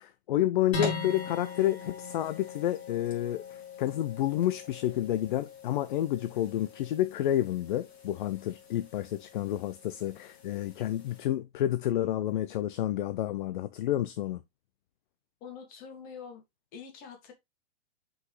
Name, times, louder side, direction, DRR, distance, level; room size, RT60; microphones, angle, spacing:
voice 1, 0.0-14.4, left 13 dB, 50° left, 0.6 m, -30 dB
sound 1, 0.7-11.2, left 4 dB, 90° left, 3.5 m, -41 dB
voice 2, 15.4-16.4 16.7-17.3, left 6 dB, 30° left, 2.2 m, -45 dB
6.3 x 5.2 x 3.2 m
hypercardioid pair, 150°, 31 cm